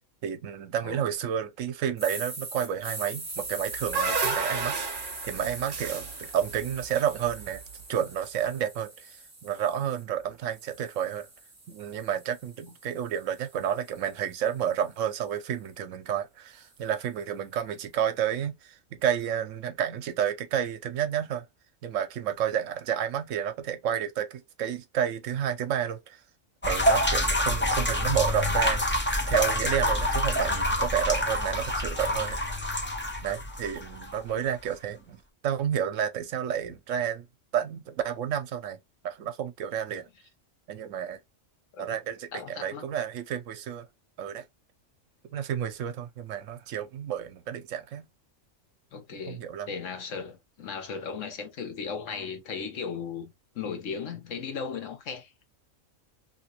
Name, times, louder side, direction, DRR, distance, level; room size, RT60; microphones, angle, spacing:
voice 1, 0.2-7.6 7.9-11.3 11.7-21.4 21.8-26.2 26.6-32.8 33.2-37.3 37.5-38.8 39.0-40.1 40.7-41.2 41.8-43.9 44.2-44.4 45.3-48.1 49.3-49.7, right 9 dB, 75° right, 0.9 m, -31 dB
sound 1, 2.0-10.0 10.5-14.7, right 2 dB, 15° right, 0.8 m, -42 dB
sound 2, 3.4-7.7, right 4 dB, 45° right, 0.9 m, -32 dB
sound 3, 26.6-34.2, left 1 dB, 20° left, 0.3 m, -27 dB
voice 2, 42.3-42.9 48.9-55.3, left 6 dB, 70° left, 1.2 m, -36 dB
2.9 x 2.8 x 2.8 m
omnidirectional pair, 1.4 m